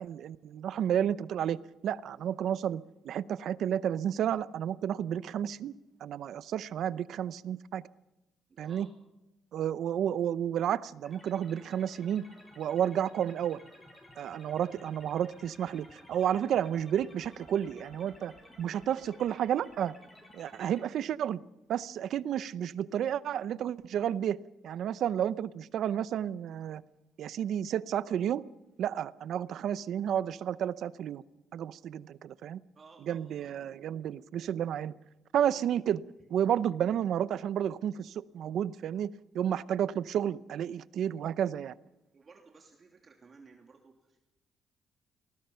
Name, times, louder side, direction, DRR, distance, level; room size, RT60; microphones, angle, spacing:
voice 1, 0.0-1.6 1.8-5.7 6.0-7.8 8.6-8.9 9.5-12.3 12.6-13.6 14.2-18.3 18.6-19.9 20.3-21.4 21.7-24.4 24.6-26.8 27.2-28.4 28.8-31.2 31.5-32.6 33.1-34.9 35.3-36.0 36.3-41.7, right 9 dB, 70° right, 17 dB, 0.7 m, -31 dB
voice 2, 8.5-8.9 32.7-33.5 42.1-44.2, right 4 dB, 40° right, 2 dB, 2.7 m, -57 dB
sound 1, 11.0-20.8, left 1 dB, 15° left, 8.0 m, -55 dB
28.0 x 20.0 x 5.7 m, 0.99 s
cardioid pair, 90°, 0 cm